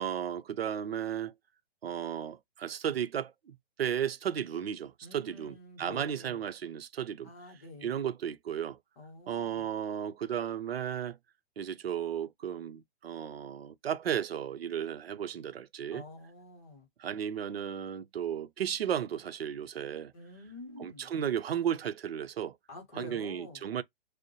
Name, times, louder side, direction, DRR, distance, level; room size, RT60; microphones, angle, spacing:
voice 1, 0.0-1.3 1.8-7.3 7.8-8.8 9.3-11.2 11.6-16.0 17.0-20.1 20.8-22.6 22.9-23.8, right 9 dB, 70° right, 0.7 m, -34 dB
voice 2, 5.0-6.4 7.2-8.0 9.0-9.6 15.9-16.9 20.1-21.1 22.7-23.7, left 2 dB, 15° left, 0.7 m, -48 dB
4.9 x 2.1 x 3.0 m
hypercardioid pair, 170°, 31 cm